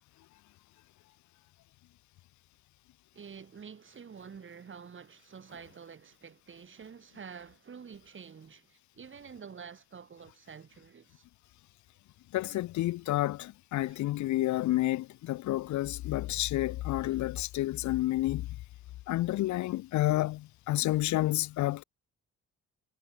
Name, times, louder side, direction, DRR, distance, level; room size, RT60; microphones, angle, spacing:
voice 1, 3.1-11.2 13.8-14.0, right 6 dB, 40° right, 3.0 m, -48 dB
voice 2, 12.3-18.6 19.1-21.8, left 16 dB, 70° left, 0.6 m, -30 dB
cardioid pair, 90°, 30 cm